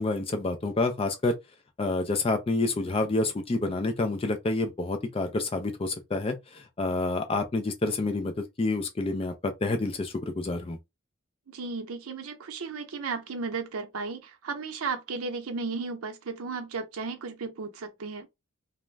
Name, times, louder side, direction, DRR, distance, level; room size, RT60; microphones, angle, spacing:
voice 1, 0.0-1.3 1.8-10.8, left 2 dB, 25° left, 0.3 m, -28 dB
voice 2, 11.5-18.3, right 4 dB, 85° right, 0.6 m, -34 dB
2.4 x 2.1 x 3.2 m
head